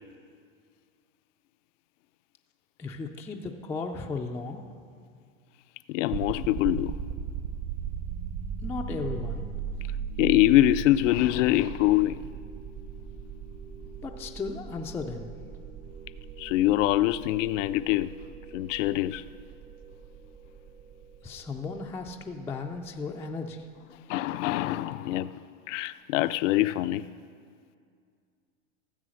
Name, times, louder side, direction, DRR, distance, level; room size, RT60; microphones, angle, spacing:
voice 1, 2.8-4.6 8.6-9.5 14.0-15.3 21.2-23.6, left 4 dB, 5° left, 0.3 m, -35 dB
voice 2, 5.9-7.0 10.2-12.2 16.4-18.1 18.5-19.2 24.1-25.4 25.7-27.0, left 15 dB, 65° left, 0.5 m, -24 dB
sound 1, 6.1-23.0, right 7 dB, 50° right, 1.2 m, -38 dB
14.0 x 7.4 x 6.3 m
hypercardioid pair, 120°, 39 cm